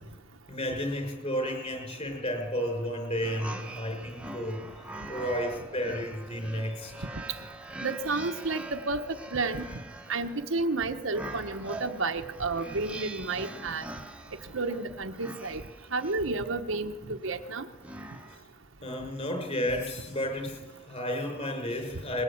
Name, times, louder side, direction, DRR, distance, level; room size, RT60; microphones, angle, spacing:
voice 1, 0.5-6.9 18.3-18.4 18.8-22.2, equal, 30° left, 4 dB, 5.7 m, -32 dB
sound 1, 1.4-18.4, right 2 dB, 5° right, 1.2 m, -44 dB
voice 2, 7.8-9.0 9.3-9.6 10.1-13.8 14.5-15.6 15.9-17.6, right 3 dB, 65° right, 6 dB, 1.2 m, -31 dB
21.5 x 21.0 x 8.7 m, 1.3 s
head